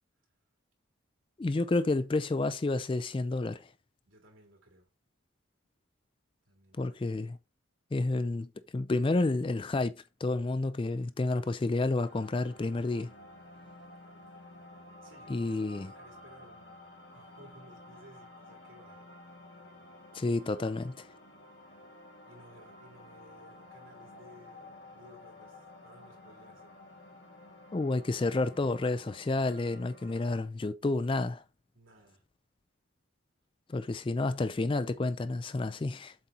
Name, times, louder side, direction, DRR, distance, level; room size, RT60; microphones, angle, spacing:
voice 1, 1.4-3.7 6.8-7.4 7.9-9.9 10.2-13.1 15.3-15.9 20.1-21.0 27.7-31.4 33.7-36.1, left 2 dB, 25° left, 0.3 m, -30 dB
voice 2, 4.1-4.9 6.5-7.1 15.0-16.8 17.1-19.1 19.4-19.8 22.3-26.7 31.7-32.2, equal, 75° right, 3.5 m, -58 dB
sound 1, 12.0-30.4, left 1 dB, 55° left, 2.3 m, -52 dB
7.6 x 4.1 x 4.3 m
head